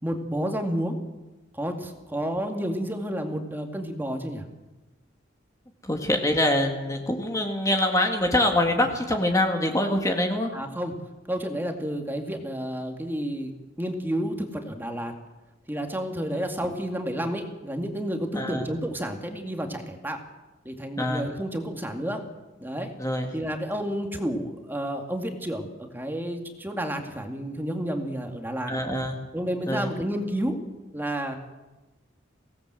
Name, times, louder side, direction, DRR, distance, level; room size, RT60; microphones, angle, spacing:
voice 1, 0.0-1.0 1.5-4.4 10.5-10.9 11.3-13.5 13.8-15.1 15.7-20.2 20.6-22.2 22.6-22.9 23.3-28.7 29.3-30.6 30.9-31.4, equal, 10° right, 3 dB, 2.4 m, -30 dB
voice 2, 5.8-10.5 16.3-16.4 18.3-18.7 21.0-21.3 23.0-23.3 28.7-29.2 29.6-29.9, left 1 dB, 15° left, 3 dB, 1.9 m, -24 dB
24.0 x 18.0 x 7.8 m, 1.1 s
head